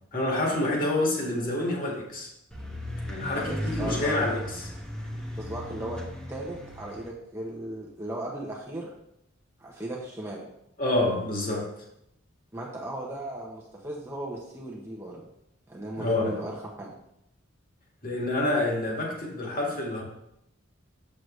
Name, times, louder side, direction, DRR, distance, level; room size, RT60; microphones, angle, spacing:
voice 1, 0.1-2.3 3.0-4.7 10.8-11.7 16.0-16.4 18.0-20.0, left 2 dB, 40° left, -2 dB, 2.0 m, -27 dB
sound 1, 2.5-7.1, equal, 5° left, 1.2 m, -36 dB
voice 2, 3.4-4.2 5.4-6.0 6.3-8.9 9.6-10.4 12.5-15.2 15.7-16.9, right 1 dB, 15° right, -3 dB, 0.9 m, -36 dB
7.7 x 6.6 x 3.2 m, 0.80 s
head